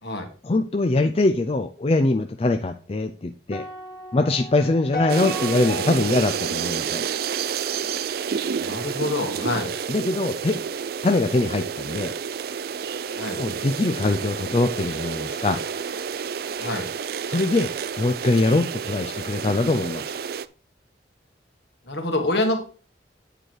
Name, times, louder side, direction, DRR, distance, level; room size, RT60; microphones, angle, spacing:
voice 1, 0.4-3.7 4.1-7.0 9.9-10.6 11.0-12.1 13.4-15.6 17.3-20.1, left 2 dB, 30° left, 7 dB, 0.4 m, -23 dB
sound 1, 3.5-7.8, left 1 dB, 50° left, 1.7 m, -35 dB
sound 2, 5.1-20.5, right 7 dB, 55° right, 0.4 m, -30 dB
voice 2, 8.6-9.7 13.2-13.4 16.6-16.9 21.9-22.6, left 2 dB, 65° left, 4 dB, 1.9 m, -26 dB
9.0 x 4.5 x 4.8 m, 0.38 s
head